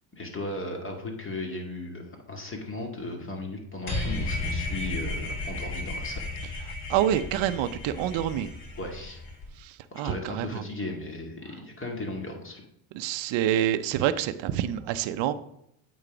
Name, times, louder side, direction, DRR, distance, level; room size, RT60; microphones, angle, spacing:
voice 1, 0.1-6.3 8.8-9.2 9.9-12.7, left 2 dB, 25° left, 2 dB, 2.0 m, -36 dB
sound 1, 3.9-9.5, left 2 dB, 50° left, 2.8 m, -33 dB
voice 2, 6.9-8.5 9.6-10.6 12.9-15.3, right 11 dB, 65° right, 10 dB, 0.7 m, -27 dB
8.3 x 4.0 x 4.9 m, 0.74 s
supercardioid pair, 95°, 49 cm